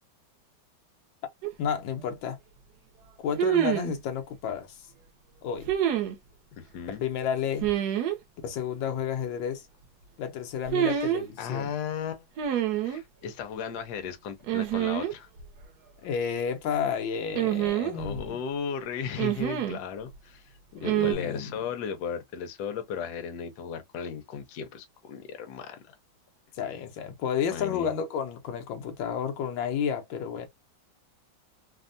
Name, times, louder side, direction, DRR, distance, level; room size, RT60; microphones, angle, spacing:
sound 1, 1.4-1.5 3.4-4.0 5.7-6.2 7.6-8.2 10.7-11.2 12.4-13.0 14.5-15.1 15.4-15.5 17.4-18.3 19.2-19.8 20.8-21.1, right 11 dB, 70° right, 1.0 m, -26 dB
voice 1, 1.6-2.4 3.2-4.8 5.4-5.7 7.0-7.7 8.4-9.7 10.2-11.7 16.0-18.4 20.7-21.7 26.6-30.5, left 7 dB, 85° left, 1.4 m, -31 dB
voice 2, 6.6-7.0 10.9-11.1 11.4-12.3 12.8-15.3 17.9-20.5 20.8-25.9 27.5-27.9, left 7 dB, 65° left, 1.1 m, -36 dB
3.4 x 2.0 x 2.5 m
omnidirectional pair, 2.1 m